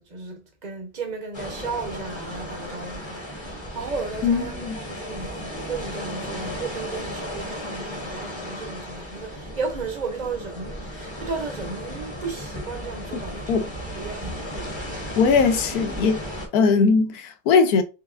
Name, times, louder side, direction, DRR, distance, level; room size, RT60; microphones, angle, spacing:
voice 1, 0.0-13.7 14.0-14.7, right 4 dB, 35° right, 0.8 m, -34 dB
sound 1, 1.3-16.5, equal, 20° left, 1.0 m, -35 dB
voice 2, 4.2-4.8 13.5-13.7 15.2-16.3 16.5-17.8, left 5 dB, 70° left, 1.2 m, -20 dB
4.6 x 3.3 x 2.5 m
omnidirectional pair, 1.8 m